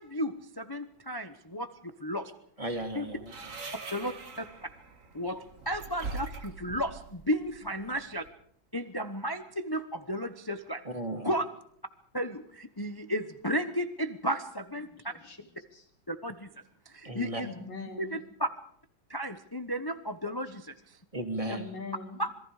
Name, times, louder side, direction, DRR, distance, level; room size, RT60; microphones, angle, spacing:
voice 1, 0.0-2.3 2.9-3.1 3.9-4.4 5.1-8.2 8.7-10.8 11.2-11.4 12.1-15.1 16.1-16.5 16.9-17.5 18.0-18.5 19.1-20.7 22.2-22.3, equal, 20° left, 9 dB, 0.5 m, -33 dB
voice 2, 2.6-3.3 10.8-11.4 17.0-17.4 21.1-21.7, right 1 dB, 15° right, 5 dB, 2.7 m, -35 dB
sound 1, 2.6-8.3, right 4 dB, 40° right, 2.1 m, -43 dB
voice 3, 7.6-7.9 14.8-15.9 17.4-18.2 21.5-22.2, left 4 dB, 65° left, 3 dB, 3.9 m, -43 dB
27.0 x 22.0 x 4.9 m, 0.64 s
omnidirectional pair, 2.2 m